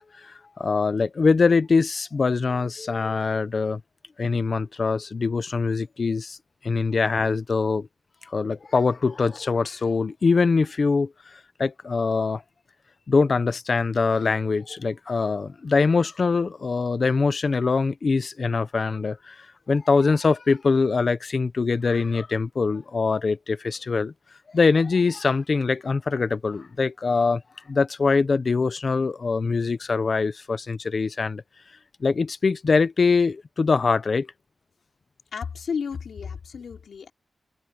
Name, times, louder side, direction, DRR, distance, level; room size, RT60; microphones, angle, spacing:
voice 1, 0.0-3.8 4.2-6.4 6.6-7.9 8.3-12.4 13.1-24.1 24.5-27.4 27.7-31.4 32.0-34.3, left 4 dB, 45° left, 0.9 m, -23 dB
voice 2, 35.3-37.1, left 6 dB, 85° left, 3.7 m, -32 dB
wide cardioid pair, 155°, 0 cm